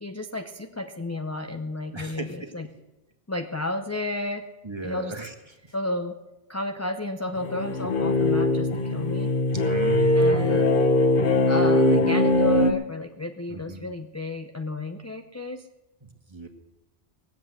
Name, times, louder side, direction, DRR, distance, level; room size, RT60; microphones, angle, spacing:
voice 1, 0.0-2.7 3.3-4.5 4.8-5.1 5.7-6.2 6.5-9.3 10.1-10.6 11.5-15.7, left 1 dB, 20° left, 5 dB, 0.5 m, -32 dB
voice 2, 1.9-2.5 4.6-5.3 5.6-5.7 9.5-10.7 13.5-13.9 16.0-16.5, right 3 dB, 25° right, 4 dB, 1.5 m, -36 dB
sound 1, 7.4-12.7, left 2 dB, 50° left, 1.1 m, -21 dB
19.5 x 7.8 x 7.9 m, 1.0 s
omnidirectional pair, 1.1 m